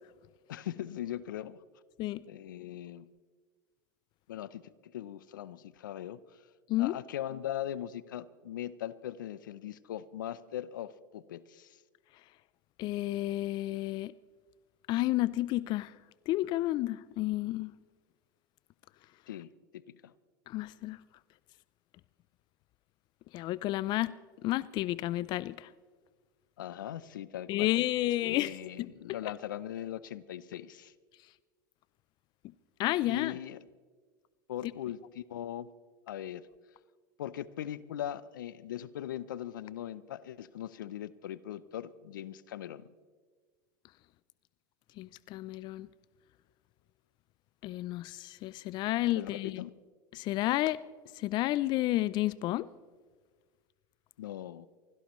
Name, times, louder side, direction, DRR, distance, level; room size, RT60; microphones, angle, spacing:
voice 1, 0.5-1.6 2.2-3.1 4.3-6.4 6.8-11.8 19.3-20.1 26.6-27.7 28.2-30.9 33.0-33.7 34.5-35.7 36.1-36.5 37.2-42.9 49.1-49.7 54.2-54.7, left 11 dB, 85° left, 0.6 m, -40 dB
voice 2, 12.8-14.1 14.9-15.9 16.3-17.7 20.5-21.0 23.3-24.1 24.4-25.7 27.5-28.5 32.8-33.3 45.0-45.9 47.6-49.6 50.1-50.8 51.2-52.7, left 16 dB, 45° left, 0.5 m, -31 dB
24.5 x 16.5 x 3.1 m
hypercardioid pair, 100°, 10 cm